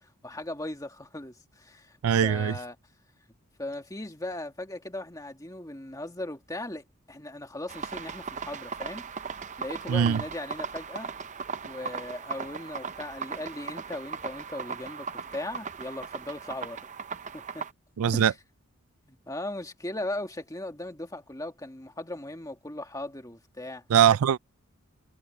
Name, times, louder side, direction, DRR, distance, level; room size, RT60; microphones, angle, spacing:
voice 1, 0.2-2.0 2.2-2.8 3.6-9.1 9.6-11.1 11.6-16.9 17.3-17.6 18.1-18.3 19.1-23.8, left 1 dB, 15° left, 1.8 m, -38 dB
voice 2, 2.0-2.6 9.9-10.2 18.0-18.3 23.9-24.4, right 8 dB, 75° right, 0.4 m, -21 dB
sound 1, 7.7-17.7, right 5 dB, 35° right, 0.6 m, -38 dB
head